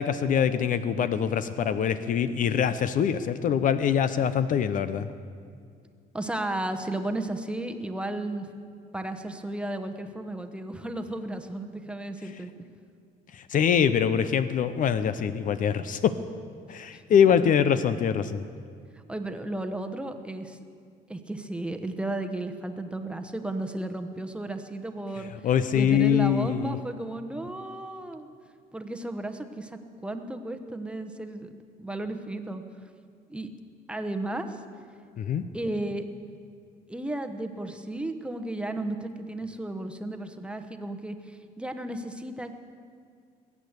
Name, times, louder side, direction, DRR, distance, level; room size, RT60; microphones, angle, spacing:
voice 1, 0.0-5.1 13.3-16.2 16.7-18.4 25.4-26.8 35.2-35.5, left 8 dB, 50° left, 12 dB, 0.6 m, -24 dB
voice 2, 6.1-8.5 8.9-12.5 16.9-17.0 17.3-17.7 19.1-20.6 21.1-25.3 25.7-28.3 28.7-31.5 31.8-32.6 33.3-33.5 33.9-34.6 35.5-36.0 36.9-42.5, right 1 dB, 5° right, 6 dB, 1.0 m, -34 dB
21.0 x 8.6 x 8.1 m, 2.2 s
cardioid pair, 110°, 17 cm